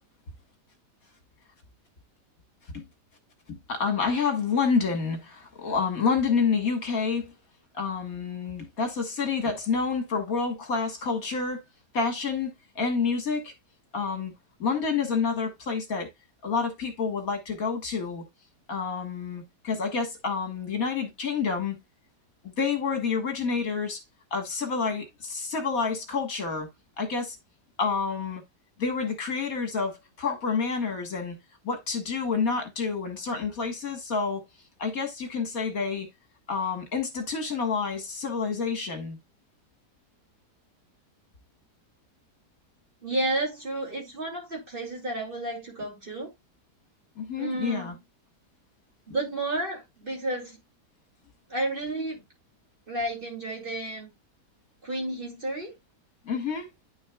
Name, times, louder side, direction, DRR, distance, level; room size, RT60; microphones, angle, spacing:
voice 1, 3.5-7.3 7.7-11.6 11.9-13.5 13.9-14.3 14.6-16.1 16.4-18.2 18.7-21.8 22.4-24.0 24.3-26.7 27.0-27.4 27.8-28.4 28.8-31.4 31.7-34.4 34.8-36.1 36.5-39.2 47.2-47.9 56.3-56.7, left 5 dB, 60° left, 1.9 m, -28 dB
voice 2, 43.0-46.3 47.4-48.0 49.1-50.6 51.5-52.2 52.9-54.1 54.8-55.7, right 2 dB, 30° right, 2.8 m, -31 dB
10.0 x 6.5 x 2.3 m
omnidirectional pair, 1.8 m